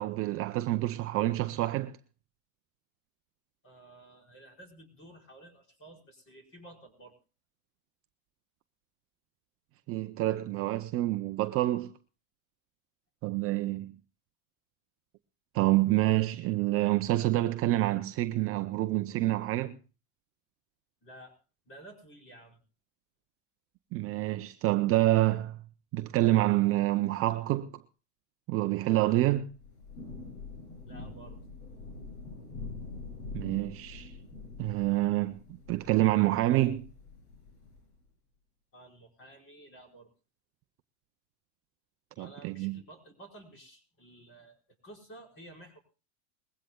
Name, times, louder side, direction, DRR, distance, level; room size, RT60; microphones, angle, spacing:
voice 1, 0.0-2.0 9.9-11.9 13.2-13.9 15.5-19.8 23.9-25.6 25.9-27.7 28.5-29.5 33.3-34.1 34.6-35.4 35.7-36.9 42.2-42.8, right 16 dB, 30° right, 0.6 m, -27 dB
voice 2, 3.6-7.1 21.0-21.3 21.7-22.6 30.9-31.4 38.7-40.1 42.1-45.8, right 1 dB, 30° left, 4.9 m, -52 dB
Thunder / Rain, 29.4-38.0, left 3 dB, 70° left, 6.9 m, -45 dB
21.5 x 16.0 x 2.2 m
supercardioid pair, 130°, 45 cm